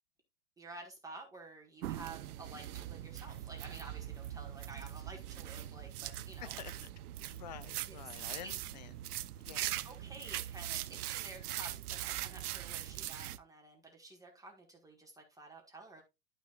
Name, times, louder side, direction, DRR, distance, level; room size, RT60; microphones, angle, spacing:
voice 1, 0.6-6.5 7.9-8.0 9.6-16.0, right 2 dB, 5° right, 1.5 m, -51 dB
sound 1, 1.8-13.4, right 14 dB, 75° right, 0.7 m, -41 dB
voice 2, 6.4-6.9 7.3-8.9 9.4-9.7, left 10 dB, 30° left, 0.4 m, -49 dB
11.5 x 6.2 x 2.4 m
supercardioid pair, 155°, 46 cm